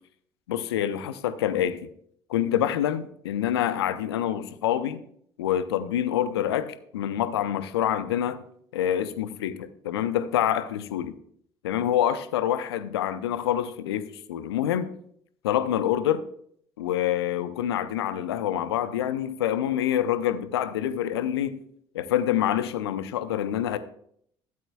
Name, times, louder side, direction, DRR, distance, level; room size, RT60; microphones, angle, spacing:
voice 1, 0.5-1.9 2.3-5.0 5.4-8.4 8.7-11.1 11.6-14.9 15.4-16.2 16.8-21.6 21.9-23.8, left 10 dB, 70° left, 0.5 m, -26 dB
13.0 x 8.6 x 2.3 m
figure-of-eight pair, 55°, 14 cm